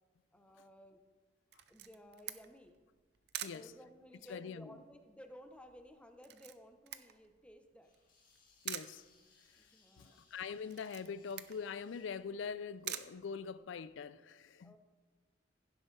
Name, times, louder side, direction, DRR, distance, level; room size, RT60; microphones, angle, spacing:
voice 1, 0.3-1.0 1.7-2.8 3.5-7.9 9.6-10.2 14.6-14.8, equal, 5° left, 0.8 m, -56 dB
Camera, 1.5-14.0, right 12 dB, 60° right, 0.6 m, -49 dB
voice 2, 3.4-3.7 4.3-4.8 8.6-9.1 9.5-9.6 10.0-14.8, left 6 dB, 85° left, 0.4 m, -43 dB
sound 1, 7.8-13.6, left 4 dB, 50° left, 2.4 m, -70 dB
16.0 x 7.6 x 3.2 m
head